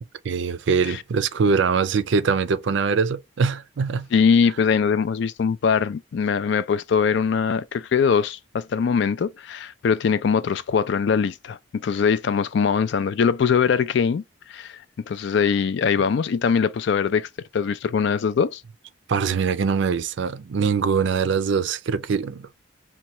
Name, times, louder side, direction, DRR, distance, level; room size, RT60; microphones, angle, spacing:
voice 1, 0.2-4.1 19.1-22.5, right 5 dB, 60° right, 0.4 m, -23 dB
voice 2, 4.1-14.2 14.5-18.6, left 6 dB, 60° left, 0.3 m, -22 dB
2.9 x 2.2 x 4.1 m
head